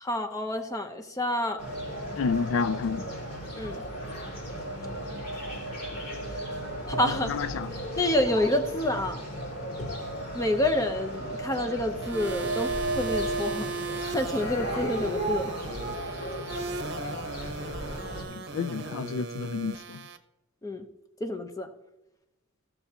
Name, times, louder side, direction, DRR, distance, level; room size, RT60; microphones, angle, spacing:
voice 1, 0.0-1.6 3.6-3.8 6.9-7.3 8.0-9.2 10.3-12.7 12.9-13.7 14.1-15.5 20.6-20.8 21.2-21.7, left 1 dB, 15° left, 0.8 m, -28 dB
sound 1, 1.6-18.2, right 1 dB, 45° left, 3.1 m, -34 dB
voice 2, 2.1-3.0 7.3-7.7 18.3-20.0, left 5 dB, 65° left, 0.3 m, -30 dB
sound 2, 12.0-20.2, right 4 dB, 55° right, 0.9 m, -37 dB
16.0 x 6.9 x 2.9 m
head